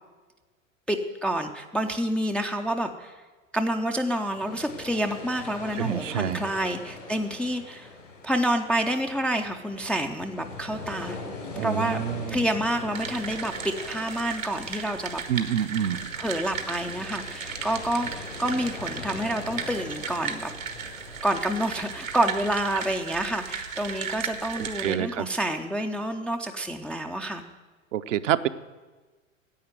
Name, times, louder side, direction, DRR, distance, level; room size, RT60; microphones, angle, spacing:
voice 1, 0.9-3.2 3.5-7.9 8.2-11.2 11.6-12.0 12.3-15.2 16.2-20.5 21.2-27.4, right 1 dB, 5° left, 3 dB, 0.3 m, -28 dB
sound 1, 4.4-22.8, left 3 dB, 75° left, 4.1 m, -42 dB
voice 2, 5.8-6.5 11.6-12.5 15.3-16.0 24.6-25.3 27.9-28.5, right 10 dB, 65° right, 10 dB, 0.7 m, -27 dB
sound 2, 12.9-24.9, right 6 dB, 85° right, 1.4 m, -36 dB
10.5 x 8.6 x 9.2 m, 1.3 s
figure-of-eight pair, 90°, 39 cm